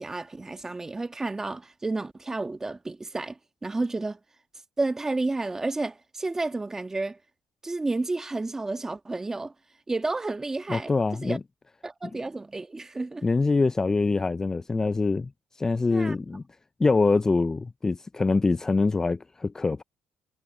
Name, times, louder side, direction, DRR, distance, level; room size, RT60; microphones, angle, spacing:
voice 1, 0.0-4.2 4.8-7.2 7.6-9.5 9.9-11.4 11.8-13.2 15.9-16.1, right 2 dB, 15° right, 1.6 m, -31 dB
voice 2, 10.7-11.4 13.2-15.3 15.6-16.4 16.8-19.8, left 3 dB, 20° left, 0.3 m, -24 dB
cardioid pair, 110°, 3 cm